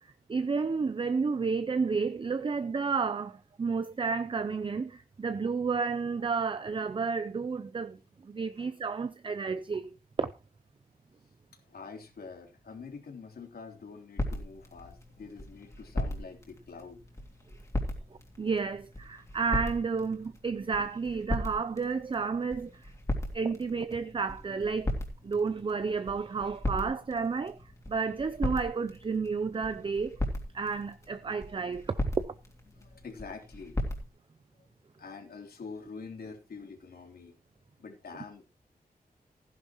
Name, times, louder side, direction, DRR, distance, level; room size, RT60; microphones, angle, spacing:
voice 1, 0.0-9.9 10.2-10.3 18.4-22.9 23.3-24.9 25.2-27.6 27.9-30.2 30.5-32.3, right 5 dB, 35° right, 0.6 m, -31 dB
voice 2, 11.7-17.0 32.7-33.8 35.0-37.4 37.8-38.4, left 4 dB, 75° left, 3.3 m, -46 dB
sound 1, 14.2-34.1, left 1 dB, 20° left, 3.2 m, -38 dB
15.5 x 11.0 x 3.1 m
wide cardioid pair, 155°, 16 cm